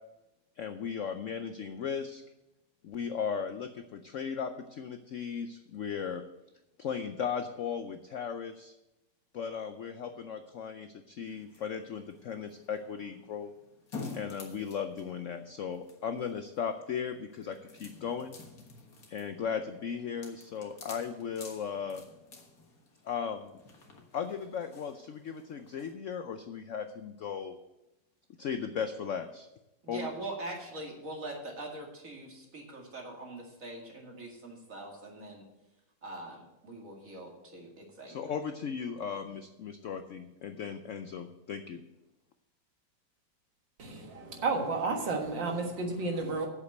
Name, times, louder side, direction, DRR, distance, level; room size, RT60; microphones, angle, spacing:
voice 1, 0.6-2.2 2.8-6.2 6.8-8.7 9.3-13.5 14.1-18.4 19.1-22.0 23.0-23.6 24.1-27.6 28.4-29.5 29.9-30.1 38.1-41.8, left 7 dB, 70° left, 8 dB, 0.7 m, -36 dB
sound 1, 11.3-25.9, left 4 dB, 55° left, 1.9 m, -50 dB
voice 2, 29.8-35.4 36.0-38.3, right 2 dB, 45° right, 0 dB, 2.6 m, -42 dB
voice 3, 43.8-46.5, right 3 dB, 85° right, 2 dB, 2.3 m, -32 dB
8.4 x 7.2 x 7.9 m, 0.95 s
omnidirectional pair, 1.9 m